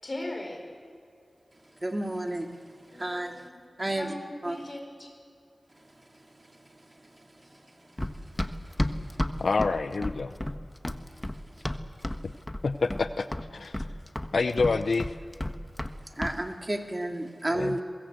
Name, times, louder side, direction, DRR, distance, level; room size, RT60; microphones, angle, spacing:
voice 1, 0.0-0.7 2.9-3.6 3.9-5.1, left 1 dB, 40° left, 4 dB, 5.4 m, -39 dB
voice 2, 1.8-2.5 2.9-3.4 3.8-4.1 4.4-4.6 8.6-8.7 16.2-17.8, right 1 dB, 25° right, 4 dB, 2.2 m, -31 dB
Run, 8.0-12.2 12.5-13.1 13.3-15.9 16.2-16.4, left 1 dB, 20° left, 1.3 m, -31 dB
voice 3, 9.4-10.3 12.2-12.3 12.6-13.9 14.3-15.2 17.5-17.8, left 4 dB, 75° left, 11 dB, 0.6 m, -28 dB
23.0 x 21.5 x 7.9 m, 2.3 s
cardioid pair, 50°, 0 cm